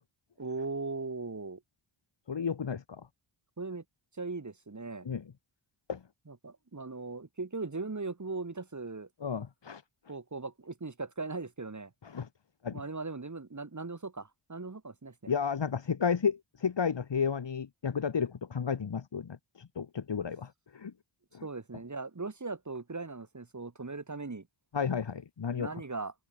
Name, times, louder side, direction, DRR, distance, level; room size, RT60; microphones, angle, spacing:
voice 1, 0.4-1.6 3.6-3.8 4.2-5.1 6.3-9.1 10.1-11.9 12.7-15.3 21.4-24.5 25.5-26.1, right 3 dB, 35° right, 6.5 m, -39 dB
voice 2, 2.3-2.8 5.1-5.2 5.9-6.0 9.2-9.8 12.1-12.3 12.6-12.8 15.3-20.5 20.7-20.9 21.3-21.4 24.7-25.7, left 6 dB, 55° left, 2.7 m, -32 dB
cardioid pair, 70°, 50 cm